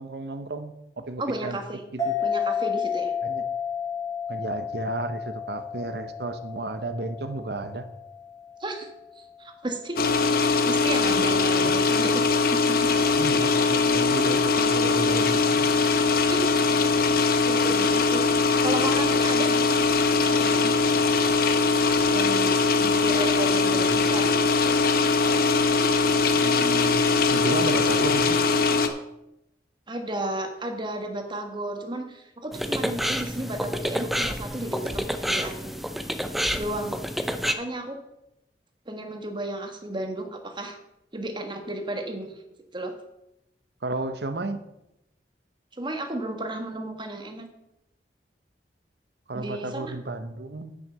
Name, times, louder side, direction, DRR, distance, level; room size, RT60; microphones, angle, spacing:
voice 1, 0.0-1.6 1.9-2.3 3.2-3.4 4.3-7.8 11.2-11.8 13.2-15.4 23.7-24.1 26.4-27.0 27.3-28.4 43.8-44.6 49.3-50.8, right 2 dB, 65° right, 10 dB, 0.9 m, -32 dB
voice 2, 1.2-1.8 2.2-3.1 8.6-8.9 9.1-10.0 10.4-13.0 16.3-16.4 17.4-18.2 18.6-19.8 20.2-20.7 22.1-24.7 29.9-35.6 36.6-37.0 37.5-38.0 38.9-40.8 41.1-42.3 42.7-42.9 45.8-47.5 49.3-49.9, right 1 dB, 25° right, 5 dB, 1.5 m, -33 dB
sound 1, 2.0-9.0, left 6 dB, 20° left, 1.8 m, -31 dB
sound 2, 10.0-28.9, left 4 dB, 55° left, 1.0 m, -21 dB
sound 3, 32.5-37.5, equal, ahead, 0.6 m, -29 dB
9.3 x 6.4 x 6.7 m, 0.85 s
head